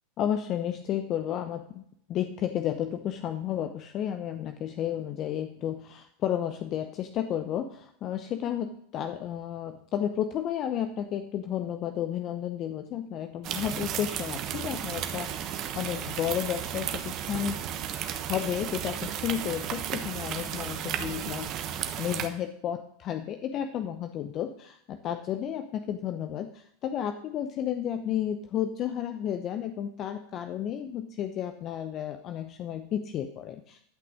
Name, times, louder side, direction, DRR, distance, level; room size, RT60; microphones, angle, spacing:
voice 1, 0.2-1.8 2.1-17.6 18.3-33.8, left 10 dB, 40° left, 7 dB, 0.7 m, -32 dB
sound 1, 13.4-22.3, right 9 dB, 45° right, 1.1 m, -34 dB
11.0 x 6.0 x 6.3 m, 0.69 s
hypercardioid pair, 95°, 0 cm